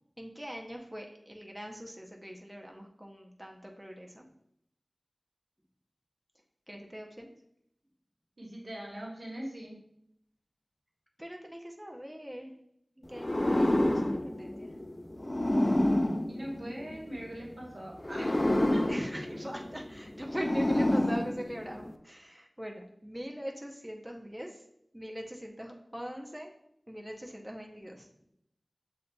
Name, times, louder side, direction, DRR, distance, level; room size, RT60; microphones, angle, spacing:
voice 1, 0.2-4.2 6.7-7.3 11.2-12.5 13.0-14.7 18.9-24.6 24.9-26.6 26.9-28.1, equal, 10° right, 1 dB, 0.6 m, -42 dB
voice 2, 8.4-9.7 16.3-18.9, right 1 dB, 80° right, -2 dB, 1.1 m, -41 dB
sound 1, 13.1-17.3 18.0-21.9, left 1 dB, 35° left, 0.3 m, -29 dB
7.4 x 2.6 x 2.2 m, 0.74 s
wide cardioid pair, 45°, 0 cm